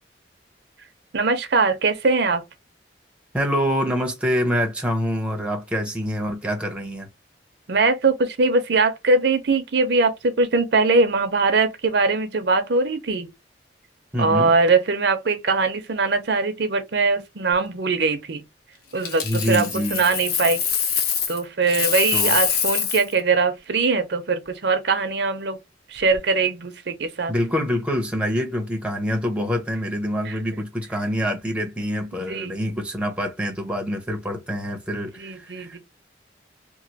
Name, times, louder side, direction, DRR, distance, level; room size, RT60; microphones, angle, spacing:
voice 1, 1.1-2.4 7.7-13.3 14.2-18.4 18.9-20.6 21.3-25.6 25.9-27.3 30.2-30.4 32.1-32.6 34.9-35.8, right 3 dB, 60° right, 0.6 m, -21 dB
voice 2, 3.3-7.1 14.1-14.5 19.2-20.1 22.1-22.4 27.3-35.8, equal, 5° right, 0.6 m, -26 dB
Coin (dropping), 19.0-21.4 21.7-23.1 26.0-26.2, left 7 dB, 55° left, 0.7 m, -24 dB
3.0 x 2.5 x 2.7 m
head